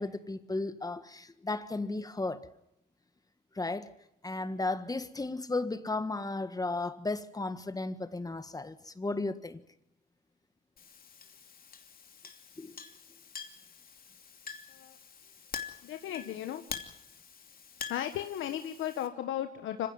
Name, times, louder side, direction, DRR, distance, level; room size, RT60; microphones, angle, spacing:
voice 1, 0.0-2.5 3.5-3.9 4.2-9.6 12.6-12.8, left 2 dB, 20° left, 1.6 m, -34 dB
Chink clink, 10.8-19.1, left 6 dB, 50° left, 2.8 m, -46 dB
voice 2, 15.8-16.6 17.9-19.9, left 11 dB, 80° left, 1.4 m, -35 dB
25.5 x 16.0 x 9.4 m
cardioid pair, 90°, 20 cm